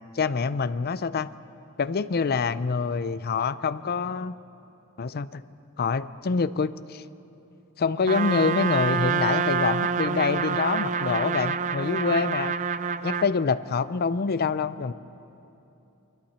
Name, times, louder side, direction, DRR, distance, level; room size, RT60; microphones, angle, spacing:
voice 1, 0.1-1.3 1.8-4.3 5.0-5.4 5.8-7.0 7.8-12.5 13.0-14.9, left 5 dB, 45° left, 15 dB, 0.5 m, -26 dB
Trumpet, 8.1-13.3, right 5 dB, 35° right, 0.4 m, -27 dB
29.0 x 22.5 x 4.4 m, 2.9 s
head